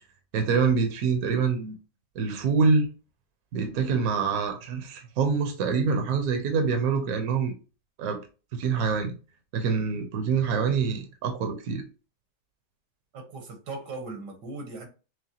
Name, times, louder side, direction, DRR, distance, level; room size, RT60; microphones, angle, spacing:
voice 1, 0.3-1.8 2.1-2.9 3.5-7.5 8.0-8.2 8.5-9.1 9.5-11.8, right 5 dB, 65° right, 1.2 m, -25 dB
voice 2, 13.1-14.9, right 3 dB, 80° right, 1.8 m, -38 dB
6.3 x 2.2 x 2.9 m
omnidirectional pair, 1.8 m